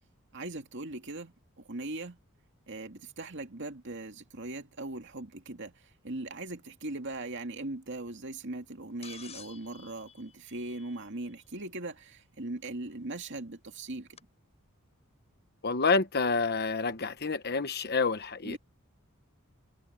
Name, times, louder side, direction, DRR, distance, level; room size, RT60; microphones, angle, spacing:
voice 1, 0.3-2.2 2.7-14.2 18.4-18.6, right 2 dB, 55° right, 2.3 m, -40 dB
sound 1, 9.0-11.3 12.9-13.0 14.2-14.3, left 7 dB, 30° left, 7.9 m, -51 dB
voice 2, 15.6-18.6, left 4 dB, 50° left, 1.2 m, -28 dB
head